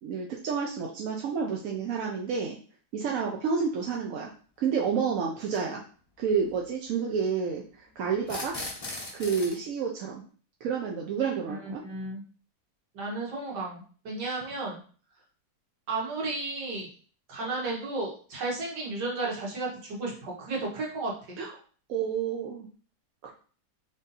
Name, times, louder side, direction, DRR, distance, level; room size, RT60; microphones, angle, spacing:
voice 1, 0.0-2.6 2.9-4.3 4.6-5.8 6.2-8.6 9.1-10.2 10.6-11.8 21.4-21.5 21.9-22.7 23.2-23.3, right 6 dB, 65° right, -1 dB, 0.9 m, -30 dB
sound 1, 3.9-4.0 5.4-5.6 8.2-9.6, left 2 dB, 30° left, 0.7 m, -37 dB
voice 2, 11.5-12.2 13.0-14.8 15.9-16.9 17.3-21.4, right 2 dB, 90° right, -2 dB, 1.8 m, -33 dB
3.6 x 2.7 x 3.9 m, 0.41 s
omnidirectional pair, 1.7 m